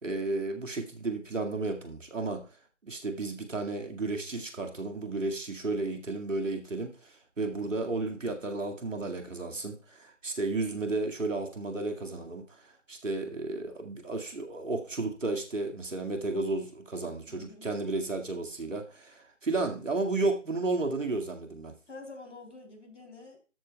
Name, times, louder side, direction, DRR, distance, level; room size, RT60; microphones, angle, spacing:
voice 1, 0.0-2.4 2.8-21.7, right 3 dB, 90° right, 3 dB, 2.2 m, -33 dB
voice 2, 17.3-17.7 21.9-23.4, left 3 dB, 70° left, 3 dB, 3.4 m, -47 dB
13.0 x 8.3 x 2.3 m, 0.35 s
figure-of-eight pair, 175°, 37 cm